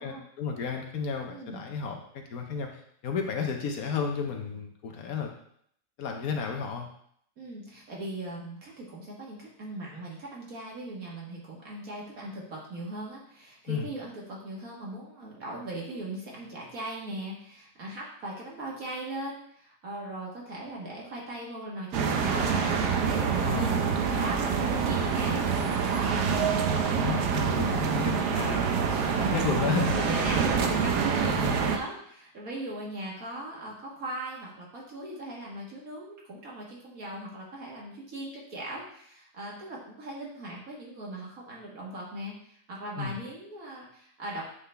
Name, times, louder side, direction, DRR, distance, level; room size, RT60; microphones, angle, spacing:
voice 1, 0.0-2.0 2.3-5.3 6.0-6.9 13.7-13.9 23.4-23.7 26.9-28.7 29.1-30.2 31.3-31.6 43.0-43.2, left 6 dB, 65° left, 3 dB, 1.1 m, -32 dB
voice 2, 1.3-1.7 7.4-23.8 24.2-27.4 28.8-29.2 29.8-44.4, right 1 dB, 60° right, -3 dB, 1.9 m, -39 dB
sound 1, 21.9-31.8, right 6 dB, 80° right, 1.2 m, -26 dB
8.1 x 3.7 x 3.3 m, 0.67 s
omnidirectional pair, 1.7 m